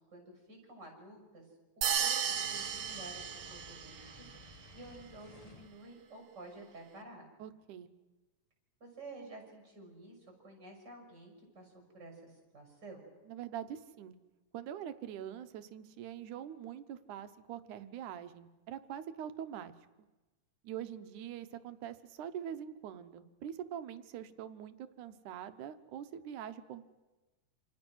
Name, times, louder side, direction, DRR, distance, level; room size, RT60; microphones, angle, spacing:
voice 1, 0.1-1.5 2.0-7.3 8.8-13.0, right 2 dB, 35° right, 3 dB, 6.7 m, -51 dB
sound 1, 1.8-4.1, right 7 dB, 55° right, 1.5 m, -34 dB
Fire, 2.2-5.8, left 2 dB, 25° left, 0.8 m, -55 dB
voice 2, 7.4-7.9 13.3-14.2 14.5-19.7 20.6-26.8, right 9 dB, 80° right, 11 dB, 2.5 m, -44 dB
28.0 x 27.0 x 6.3 m, 1.1 s
omnidirectional pair, 3.5 m